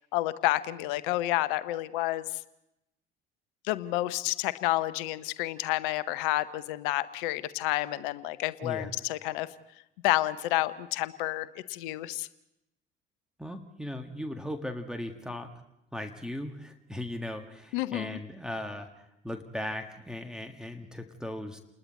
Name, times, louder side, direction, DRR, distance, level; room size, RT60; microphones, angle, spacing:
voice 1, 0.1-2.3 3.6-9.5 10.0-12.3 17.7-18.2, left 17 dB, 65° left, 16 dB, 0.8 m, -30 dB
voice 2, 8.6-8.9 13.4-15.6 15.9-21.6, left 1 dB, ahead, 4 dB, 1.6 m, -38 dB
29.5 x 21.0 x 4.3 m, 0.86 s
figure-of-eight pair, 60°, 29 cm